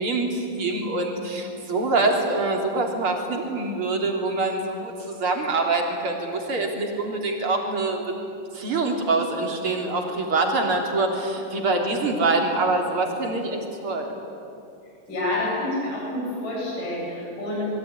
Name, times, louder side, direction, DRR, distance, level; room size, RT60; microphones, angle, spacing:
voice 1, 0.0-8.0 8.5-14.1, right 3 dB, 40° right, 2 dB, 3.9 m, -25 dB
voice 2, 15.1-17.8, left 1 dB, 70° left, -4 dB, 9.2 m, -28 dB
27.5 x 22.5 x 9.6 m, 2.8 s
omnidirectional pair, 3.9 m